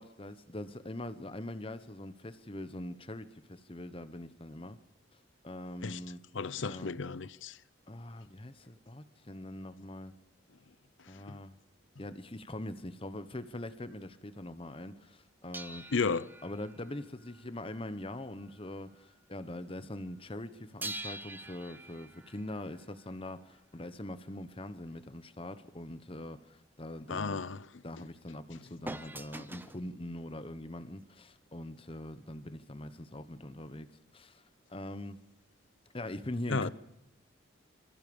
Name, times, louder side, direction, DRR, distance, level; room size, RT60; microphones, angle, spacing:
voice 1, 0.0-4.8 5.4-6.2 6.6-6.9 7.9-10.2 11.1-11.6 12.0-15.9 16.4-27.4 27.8-33.9 34.1-34.4 34.7-35.2 35.9-36.7, left 1 dB, 25° left, 1.1 m, -42 dB
voice 2, 6.3-7.6 11.3-11.4 15.9-16.3 27.1-27.7 36.5-36.7, left 4 dB, 70° left, 0.7 m, -33 dB
sound 1, 15.5-18.7 18.9-19.2 20.8-23.6 28.9-29.9 30.8-30.9, right 2 dB, 10° right, 0.8 m, -45 dB
27.5 x 14.5 x 7.1 m
head